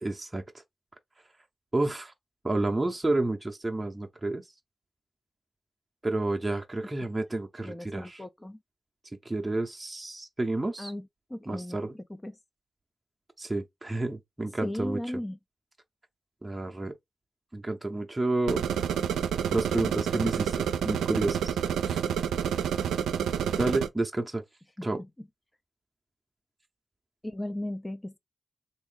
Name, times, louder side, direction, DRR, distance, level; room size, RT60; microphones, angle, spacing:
voice 1, 0.0-0.6 1.7-2.1 2.4-4.4 6.0-8.2 9.2-10.9 11.5-12.0 13.4-15.2 16.4-16.9 17.5-18.6 19.5-21.6 21.9-22.0 23.6-24.4 24.8-25.0, right 2 dB, 20° right, 0.6 m, -30 dB
voice 2, 7.6-8.6 10.8-11.0 11.3-11.8 12.2-12.3 14.6-15.4 24.8-24.9 27.2-28.2, left 1 dB, 20° left, 0.5 m, -36 dB
sound 1, 18.5-23.9, right 8 dB, 90° right, 0.4 m, -28 dB
3.0 x 2.5 x 3.6 m
supercardioid pair, 45°, 0 cm